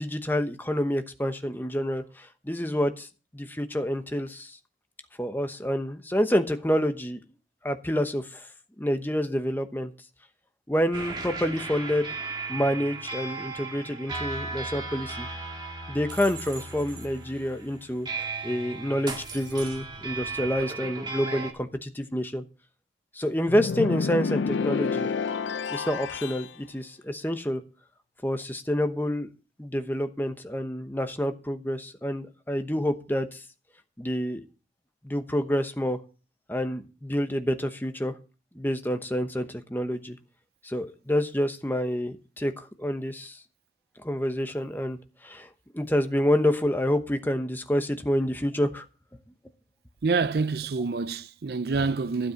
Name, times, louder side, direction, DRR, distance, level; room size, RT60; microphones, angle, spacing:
voice 1, 0.0-3.1 3.3-4.6 5.2-7.2 7.6-8.4 8.8-9.9 10.7-12.1 12.5-15.3 15.9-22.4 23.1-25.1 25.7-27.6 28.2-29.3 29.6-33.4 34.0-34.4 35.0-36.0 36.5-38.1 38.5-40.2 40.6-43.4 44.0-45.0 45.2-45.5 45.7-48.8, equal, 10° left, 0.9 m, -28 dB
sound 1, 10.9-21.5, right 3 dB, 25° right, 2.0 m, -36 dB
sound 2, 23.5-26.5, left 5 dB, 85° left, 0.5 m, -29 dB
voice 2, 50.0-52.3, right 4 dB, 55° right, 0.5 m, -27 dB
12.5 x 7.8 x 5.9 m
head